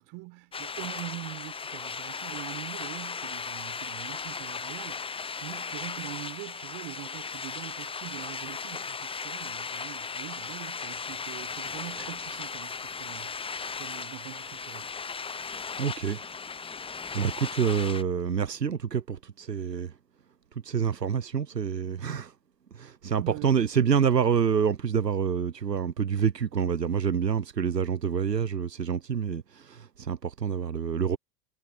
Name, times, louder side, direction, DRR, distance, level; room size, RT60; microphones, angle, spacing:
voice 1, 0.0-13.4 13.8-14.9 23.1-23.5, right 26 dB, 50° right, 4.3 m, -43 dB
sound 1, 0.5-18.0, left 5 dB, 10° left, 1.0 m, -37 dB
voice 2, 15.8-16.2 16.5-16.6 17.1-20.0 20.5-22.3 22.7-31.2, right 7 dB, 85° right, 1.0 m, -27 dB
figure-of-eight pair, 80°, 48 cm